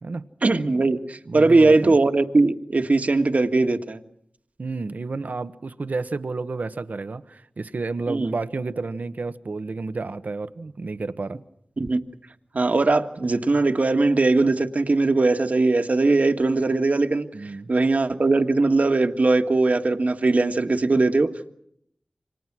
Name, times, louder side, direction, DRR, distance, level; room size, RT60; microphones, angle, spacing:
voice 1, 0.4-4.0 8.1-8.3 11.8-12.0 12.5-21.5, right 3 dB, 60° right, 7 dB, 1.8 m, -20 dB
voice 2, 1.3-2.0 4.6-11.4 17.3-17.8, right 3 dB, 80° right, 11 dB, 1.2 m, -31 dB
29.0 x 26.0 x 6.2 m, 0.71 s
wide cardioid pair, 65°, 3 cm